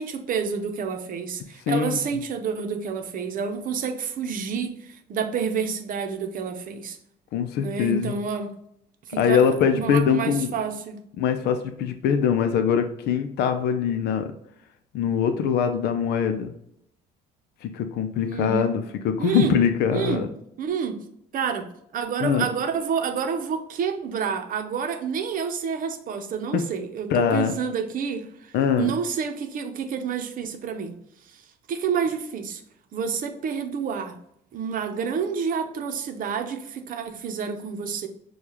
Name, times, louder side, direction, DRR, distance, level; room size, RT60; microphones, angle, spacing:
voice 1, 0.0-7.0 7.6-8.5 9.1-11.0 18.3-18.7 19.2-19.6 19.9-20.3 20.6-21.0 21.3-21.7 21.9-31.0 31.3-31.4 31.7-32.6 32.9-34.2 34.5-38.1, right 6 dB, 55° right, 6 dB, 0.7 m, -29 dB
voice 2, 1.7-2.0 7.3-8.1 9.2-10.5 11.2-14.3 14.9-16.5 17.6-20.3 22.2-22.5 26.5-26.6 27.1-27.5 28.5-28.9, left 7 dB, 75° left, 8 dB, 0.5 m, -23 dB
6.5 x 2.4 x 2.9 m, 0.72 s
cardioid pair, 110°, 17 cm